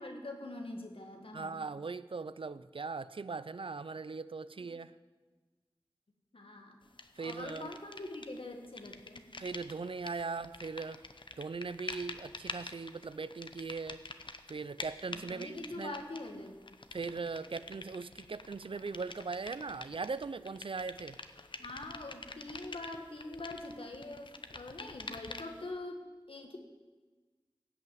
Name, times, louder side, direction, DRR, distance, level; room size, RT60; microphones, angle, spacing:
voice 1, 0.0-1.7 4.6-4.7 6.3-6.8 7.2-9.2 15.1-16.6 21.6-26.6, left 2 dB, 90° left, 3 dB, 1.7 m, -44 dB
voice 2, 1.3-4.9 7.2-7.7 9.4-11.0 11.4-14.0 14.5-16.0 16.9-21.2, right 4 dB, 75° right, 16 dB, 0.5 m, -39 dB
sound 1, 7.0-8.4 8.6-25.7, left 3 dB, 65° left, 0.8 m, -47 dB
16.5 x 5.8 x 9.2 m, 1.3 s
wide cardioid pair, 55°, 9 cm